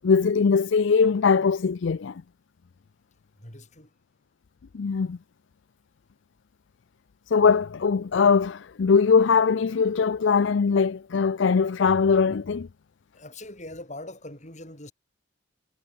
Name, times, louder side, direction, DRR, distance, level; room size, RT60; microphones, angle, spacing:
voice 1, 0.0-2.1 4.7-5.2 7.3-12.7, left 5 dB, 60° left, 0.4 m, -21 dB
voice 2, 3.4-3.9 13.1-14.9, left 1 dB, 35° left, 6.9 m, -42 dB
head